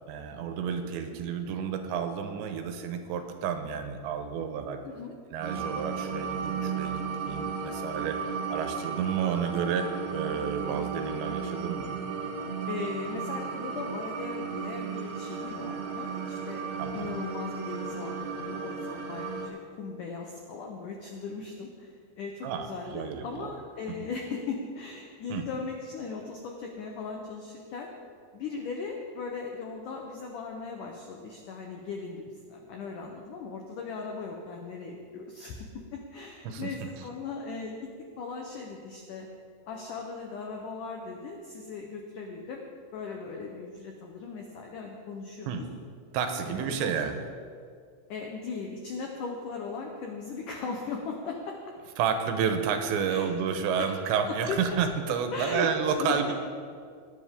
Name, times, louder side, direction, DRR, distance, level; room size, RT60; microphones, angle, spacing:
voice 1, 0.1-4.8 5.3-8.2 8.5-11.9 12.2-12.4 16.8-17.1 22.4-23.5 23.9-24.0 25.3-25.5 36.4-36.9 45.5-45.6 46.1-47.2 52.0-56.3, right 7 dB, 85° right, 6 dB, 3.2 m, -31 dB
sound 1, 5.4-19.5, right 5 dB, 70° right, 2.9 m, -34 dB
voice 2, 12.7-16.6 16.9-27.9 28.3-37.9 38.2-39.3 39.7-42.6 42.9-45.6 46.4-46.9 48.1-51.6 53.1-53.3 53.8-53.9 54.5-54.6 55.3-55.7 56.0-56.3, left 4 dB, 85° left, 1 dB, 1.8 m, -38 dB
19.0 x 9.9 x 3.7 m, 2.2 s
omnidirectional pair, 5.1 m